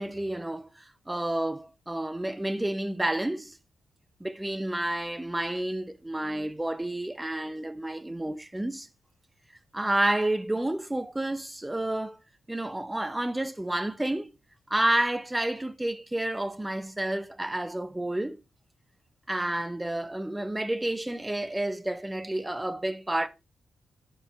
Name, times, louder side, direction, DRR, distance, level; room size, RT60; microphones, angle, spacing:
voice 1, 0.0-3.6 4.2-8.9 9.7-12.2 12.5-14.4 14.7-18.4 19.3-23.3, right 1 dB, 10° right, 0.6 m, -30 dB
10.0 x 4.8 x 3.4 m
cardioid pair, 115°, 0 cm